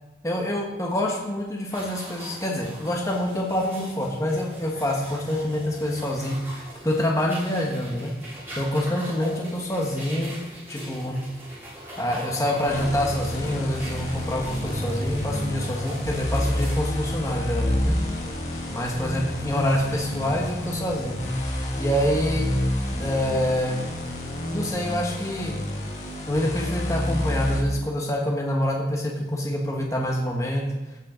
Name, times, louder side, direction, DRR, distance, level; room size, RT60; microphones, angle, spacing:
voice 1, 0.2-8.1 8.6-10.3 10.7-11.2 12.0-17.9 18.7-21.2 21.8-22.5 23.0-23.8 24.5-25.6 26.3-30.6, equal, 15° left, -1 dB, 1.2 m, -26 dB
sound 1, 1.7-16.8, equal, 15° right, 3.3 m, -41 dB
sound 2, 12.7-27.6, left 1 dB, 40° left, 1.5 m, -29 dB
sound 3, 13.2-23.3, left 1 dB, 55° right, 3.4 m, -41 dB
15.0 x 5.5 x 3.9 m, 1.1 s
head